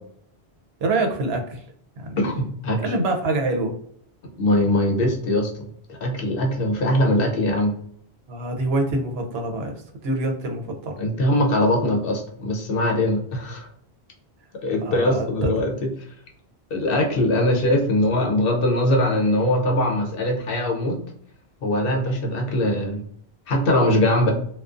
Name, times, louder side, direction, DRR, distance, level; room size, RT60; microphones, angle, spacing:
voice 1, 0.8-1.6 2.0-2.2 2.8-3.7 8.3-9.8 10.0-10.9 14.8-15.5, right 2 dB, 75° right, 3 dB, 0.8 m, -25 dB
voice 2, 2.2-2.8 4.4-5.5 5.9-7.7 11.0-13.7 14.6-15.9 16.7-21.0 21.6-23.0 23.5-24.3, left 1 dB, 65° left, 2 dB, 0.7 m, -21 dB
2.4 x 2.2 x 2.4 m, 0.62 s
omnidirectional pair, 1.1 m